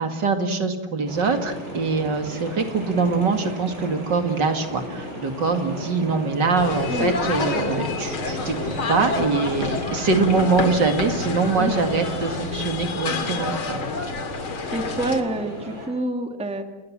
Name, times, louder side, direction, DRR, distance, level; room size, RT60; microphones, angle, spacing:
voice 1, 0.0-13.8, right 4 dB, 60° right, 6 dB, 2.8 m, -23 dB
sound 1, 1.0-15.9, right 1 dB, 30° right, 7.8 m, -35 dB
sound 2, 6.6-15.2, left 4 dB, 85° left, 3.1 m, -28 dB
voice 2, 14.7-16.6, right 2 dB, 5° right, 6 dB, 1.7 m, -27 dB
28.5 x 20.0 x 7.5 m, 1.1 s
omnidirectional pair, 2.2 m